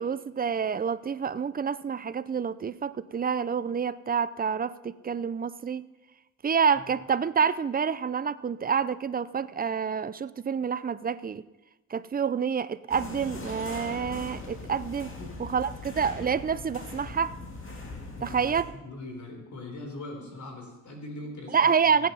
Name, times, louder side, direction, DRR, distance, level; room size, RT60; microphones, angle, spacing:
voice 1, 0.0-5.8 6.4-11.4 11.9-15.1 15.4-17.3 18.2-18.6 21.5-22.1, right 6 dB, 30° right, 15 dB, 0.5 m, -28 dB
sound 1, 12.9-18.6, left 2 dB, 40° left, 2.4 m, -40 dB
voice 2, 15.2-15.5 18.2-18.4 18.8-22.1, left 2 dB, 65° left, 2 dB, 3.9 m, -41 dB
15.5 x 9.4 x 5.6 m, 1.0 s
cardioid pair, 110°, 32 cm